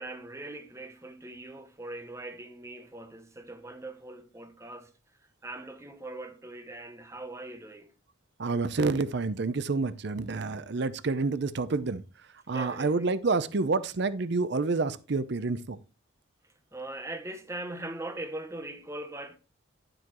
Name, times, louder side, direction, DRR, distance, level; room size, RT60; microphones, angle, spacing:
voice 1, 0.0-4.9 5.4-7.9 12.5-13.1 16.7-19.4, right 2 dB, 15° right, 0.8 m, -41 dB
voice 2, 8.4-12.0 12.5-15.8, right 3 dB, 55° right, 0.6 m, -28 dB
11.5 x 7.7 x 3.0 m
head